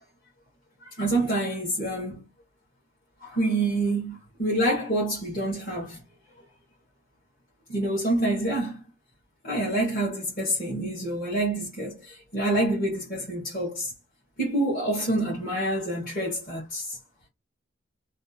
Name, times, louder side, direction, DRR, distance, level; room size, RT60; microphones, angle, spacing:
voice 1, 1.0-2.2 3.2-6.0 7.7-8.8 9.4-13.9 14.4-17.0, right 1 dB, 50° left, 1.7 m, -27 dB
3.3 x 2.5 x 2.7 m
head